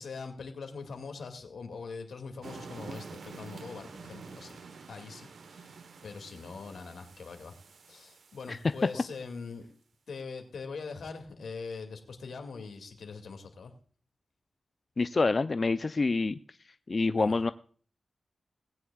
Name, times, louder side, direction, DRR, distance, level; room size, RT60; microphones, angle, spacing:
voice 1, 0.0-4.6 4.9-7.6 7.9-9.7 10.1-13.7 17.1-17.3, left 4 dB, 90° left, 5 dB, 2.2 m, -42 dB
sound 1, 2.4-9.1, right 5 dB, 80° right, 1.0 m, -48 dB
voice 2, 15.0-16.4 16.9-17.5, left 3 dB, 40° left, 11 dB, 0.4 m, -27 dB
19.0 x 9.7 x 2.3 m, 0.43 s
wide cardioid pair, 105°, 0 cm